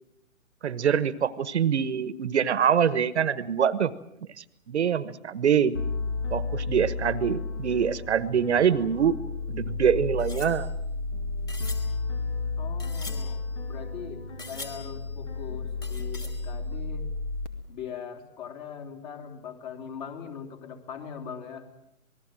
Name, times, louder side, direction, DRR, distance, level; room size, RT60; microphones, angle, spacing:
voice 1, 0.6-3.9 4.4-5.8 6.3-9.2 9.5-10.7, right 8 dB, 50° right, 15 dB, 1.2 m, -24 dB
sound 1, 5.7-17.5, left 3 dB, 55° left, 2.3 m, -32 dB
sound 2, 10.2-14.0 14.4-15.3 15.8-17.0 17.3-17.4 17.6-17.7, left 2 dB, 10° left, 2.4 m, -45 dB
voice 2, 12.6-13.4 13.7-17.1 17.7-21.7, left 7 dB, 35° left, 5 dB, 3.5 m, -41 dB
27.0 x 20.0 x 7.5 m, 0.80 s
hypercardioid pair, 150°, 42 cm